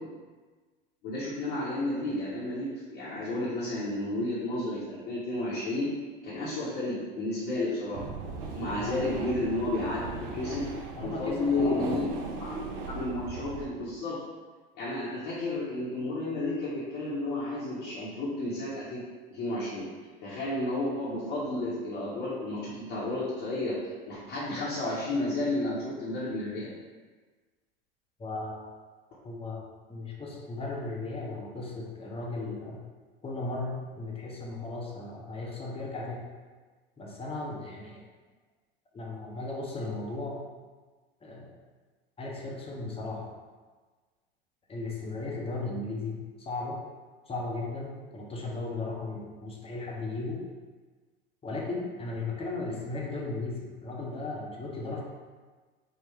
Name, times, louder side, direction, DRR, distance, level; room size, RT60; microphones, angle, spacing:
voice 1, 1.0-5.9 6.2-8.0 8.5-10.7 11.0-12.0 12.4-12.5 12.8-14.2 14.7-19.0 19.3-19.9 20.2-23.8 24.1-26.7, left 2 dB, 50° left, -10 dB, 1.0 m, -32 dB
sound 1, 7.9-13.7, right 3 dB, 65° right, 0.6 m, -38 dB
voice 2, 11.0-11.9 28.2-28.6 29.2-32.8 33.2-36.3 37.0-38.0 38.9-40.4 41.2-41.5 42.2-43.3 44.7-46.8 47.3-50.4 51.4-55.0, left 3 dB, 20° left, -2 dB, 0.6 m, -36 dB
3.7 x 2.1 x 3.2 m, 1.4 s
hypercardioid pair, 85°, 30 cm